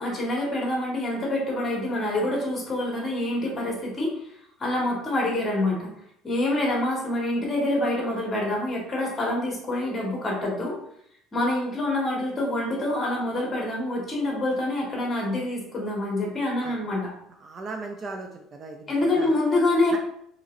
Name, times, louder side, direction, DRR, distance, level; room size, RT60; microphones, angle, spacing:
voice 1, 0.0-4.1 4.6-5.9 6.2-10.8 11.3-17.1 18.9-20.0, left 1 dB, 25° left, -2 dB, 1.3 m, -26 dB
voice 2, 17.4-19.4 19.9-20.0, right 3 dB, 30° right, 3 dB, 0.3 m, -38 dB
3.8 x 2.9 x 2.5 m, 0.70 s
cardioid pair, 130°, 0 cm